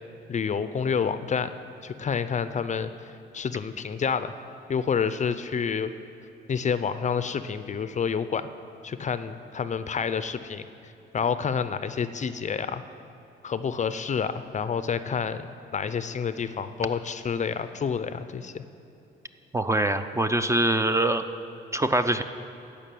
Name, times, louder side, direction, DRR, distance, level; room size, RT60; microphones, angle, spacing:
voice 1, 0.3-1.5 1.8-2.9 3.3-4.3 4.7-5.9 6.5-8.5 8.8-10.6 11.1-12.8 13.4-18.6, left 6 dB, 35° left, 12 dB, 0.5 m, -28 dB
voice 2, 19.5-21.2 21.7-22.2, right 1 dB, 15° right, 9 dB, 0.5 m, -23 dB
13.5 x 5.2 x 9.2 m, 2.9 s
cardioid pair, 90°, 20 cm